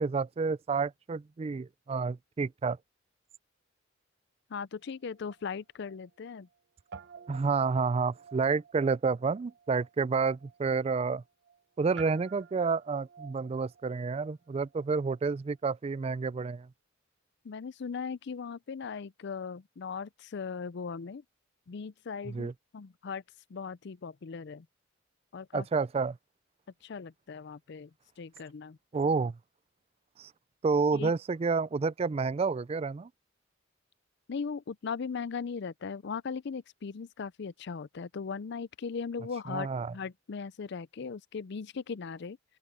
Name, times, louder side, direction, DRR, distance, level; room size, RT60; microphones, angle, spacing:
voice 1, 0.0-2.8 7.3-11.2 11.8-16.7 22.3-22.5 25.5-26.2 28.9-29.4 30.2-30.3 30.6-33.1 39.5-39.9, right 4 dB, 30° right, 0.3 m, -29 dB
voice 2, 4.5-6.5 17.4-21.2 21.7-22.5 22.7-23.2 23.5-24.7 25.3-25.7 26.8-27.9 28.2-28.8 30.9-31.1 34.3-42.4, left 5 dB, 55° left, 0.5 m, -38 dB
Guitar, 4.8-6.6 6.9-15.5, right 6 dB, 60° right, 0.7 m, -53 dB
open air
head